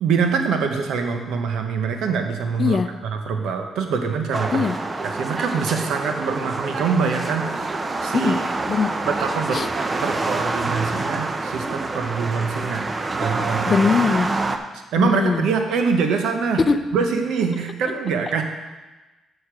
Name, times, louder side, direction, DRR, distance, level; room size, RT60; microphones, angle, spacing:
voice 1, 0.0-4.7 5.0-8.4 9.1-9.6 10.0-12.8 13.1-13.7 14.7-16.6 16.9-18.4, right 5 dB, 85° right, 5 dB, 0.9 m, -24 dB
sound 1, 4.3-14.6, right 3 dB, 30° right, 0.7 m, -26 dB
voice 2, 13.7-14.4 15.0-15.5 16.7-16.8, left 5 dB, 40° left, 10 dB, 0.5 m, -21 dB
6.6 x 6.5 x 5.8 m, 1.2 s
cardioid pair, 85°, 0 cm